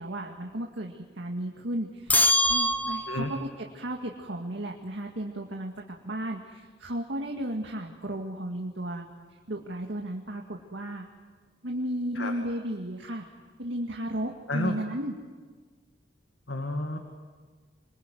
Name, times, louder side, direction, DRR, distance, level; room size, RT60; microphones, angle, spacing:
voice 1, 0.0-9.1 9.5-11.1 11.6-13.3 13.6-15.2, right 1 dB, 75° right, 1 dB, 2.1 m, -34 dB
sound 1, 2.1-3.5, left 1 dB, 10° left, 1.0 m, -24 dB
voice 2, 16.5-17.0, left 2 dB, 80° left, 4 dB, 2.3 m, -30 dB
26.5 x 21.5 x 9.4 m, 1.4 s
head